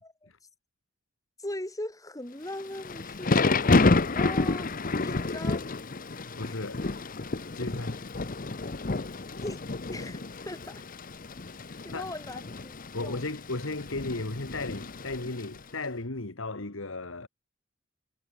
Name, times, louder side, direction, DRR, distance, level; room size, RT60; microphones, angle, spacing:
voice 1, 1.4-3.8 4.1-4.7 5.0-5.6 9.3-9.6 9.9-10.8 11.8-13.3, left 1 dB, 15° left, 3.5 m, -39 dB
Thunder / Rain, 2.5-15.6, left 3 dB, 45° left, 1.0 m, -29 dB
voice 2, 6.3-6.8 7.5-8.0 11.9-12.1 12.9-17.3, left 2 dB, 80° left, 2.0 m, -35 dB
head